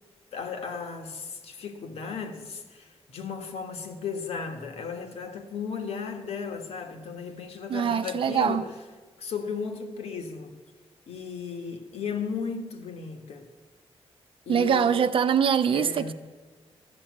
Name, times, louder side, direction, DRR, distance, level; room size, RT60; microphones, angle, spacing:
voice 1, 0.3-8.7 9.2-10.5 11.1-13.5 14.5-15.0 15.7-16.1, left 5 dB, 85° left, 1.5 m, -35 dB
voice 2, 7.7-8.6 14.5-16.1, right 7 dB, 55° right, 0.7 m, -23 dB
13.5 x 7.3 x 9.4 m
wide cardioid pair, 145°, 10 cm